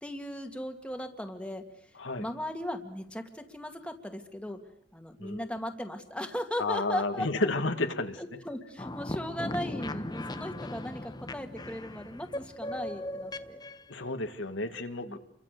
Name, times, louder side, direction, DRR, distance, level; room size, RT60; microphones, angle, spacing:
voice 1, 0.0-1.9 2.2-4.6 4.9-7.3 8.2-13.6 15.0-15.2, left 1 dB, 5° left, 4 dB, 2.3 m, -37 dB
voice 2, 6.6-8.2 13.9-15.2, left 2 dB, 90° left, 6 dB, 2.3 m, -31 dB
sound 1, 8.8-13.9, left 1 dB, 20° left, 1.0 m, -38 dB
29.5 x 24.0 x 6.8 m, 0.66 s
head